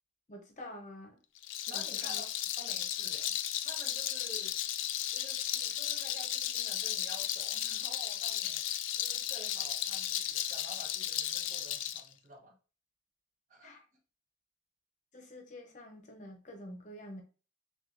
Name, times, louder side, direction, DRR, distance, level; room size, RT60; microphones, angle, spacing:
voice 1, 0.3-1.2 1.7-2.2 13.6-13.8 15.1-17.2, left 1 dB, 40° left, 3 dB, 0.7 m, -48 dB
Rattle, 1.4-12.0, left 12 dB, 90° left, 0.3 m, -35 dB
voice 2, 1.7-2.3 2.6-3.3 3.6-4.5 5.1-8.6 9.0-12.6 13.5-13.8, right 2 dB, 40° right, 2 dB, 0.8 m, -51 dB
6.1 x 2.3 x 2.5 m, 0.35 s
head